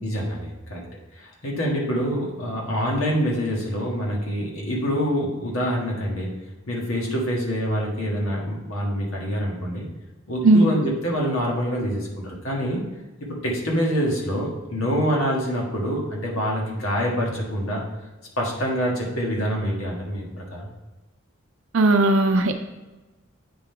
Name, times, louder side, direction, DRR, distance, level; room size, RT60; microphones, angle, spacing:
voice 1, 0.0-0.8 1.1-6.4 6.7-9.9 10.3-12.8 13.3-17.8 18.4-20.7, equal, 80° left, -2 dB, 1.6 m, -26 dB
voice 2, 21.7-22.5, right 2 dB, 65° right, 4 dB, 0.5 m, -16 dB
8.6 x 3.7 x 4.5 m, 1.1 s
head